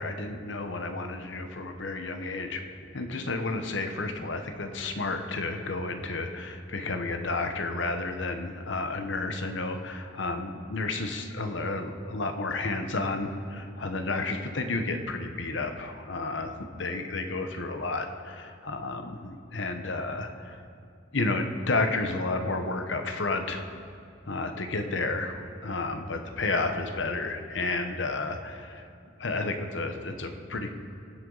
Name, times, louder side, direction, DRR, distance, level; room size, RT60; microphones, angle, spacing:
voice 1, 0.0-2.6 2.9-20.6 21.1-23.7 24.2-28.8 29.2-30.7, left 3 dB, 70° left, 6 dB, 1.0 m, -31 dB
23.0 x 7.9 x 4.0 m, 2.5 s
head